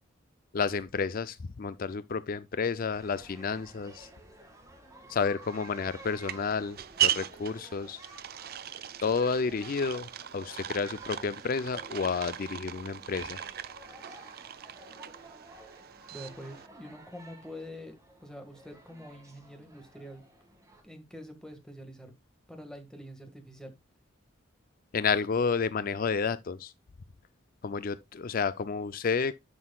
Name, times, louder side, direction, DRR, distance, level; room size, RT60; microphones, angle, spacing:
voice 1, 0.5-4.1 5.1-8.0 9.0-13.4 24.9-26.7 27.6-29.3, left 5 dB, 45° left, 0.4 m, -31 dB
sound 1, 2.9-20.8, right 1 dB, 15° right, 2.0 m, -53 dB
sound 2, 5.4-16.7, right 10 dB, 50° right, 0.5 m, -37 dB
voice 2, 16.1-20.2 20.8-22.1 22.5-23.7, equal, 5° left, 1.7 m, -46 dB
11.0 x 6.2 x 2.3 m
head